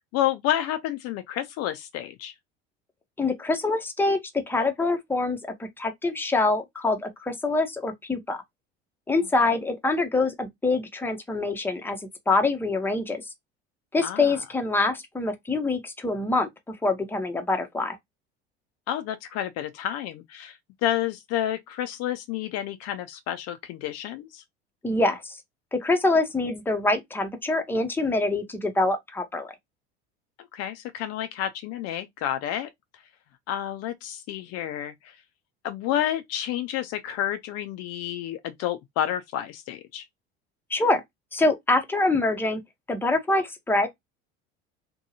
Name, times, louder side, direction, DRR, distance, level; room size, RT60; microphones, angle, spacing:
voice 1, 0.1-2.3 14.0-14.4 18.9-24.4 30.5-32.7 33.5-35.2 35.6-40.0, left 11 dB, 50° left, 0.4 m, -30 dB
voice 2, 3.2-4.2 4.5-8.4 9.1-12.0 12.3-13.2 13.9-18.0 24.8-25.4 25.7-29.5 40.7-41.0 41.3-42.6 42.9-43.9, left 2 dB, 5° left, 0.6 m, -25 dB
2.7 x 2.2 x 2.7 m
hypercardioid pair, 70°, 32 cm